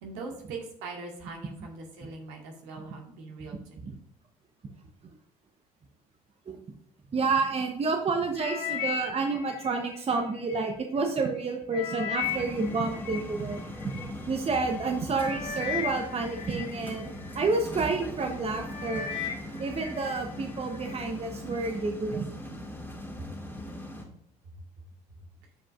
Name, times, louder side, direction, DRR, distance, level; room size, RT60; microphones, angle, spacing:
voice 1, 0.0-4.0 23.2-23.3, right 3 dB, 65° right, 1 dB, 2.0 m, -41 dB
voice 2, 7.1-13.9 14.3-19.1 19.6-22.3, right 3 dB, 30° right, 4 dB, 1.1 m, -29 dB
sound 1, 8.4-10.7 11.2-14.1 14.8-14.9 15.2-17.6 18.1-18.4 18.7-20.2 20.5-21.0 21.6-21.7, left 8 dB, 70° left, 2.2 m, -36 dB
sound 2, 12.2-24.0, equal, 10° left, 2.2 m, -40 dB
14.5 x 5.0 x 2.6 m, 0.70 s
hypercardioid pair, 60°, 20 cm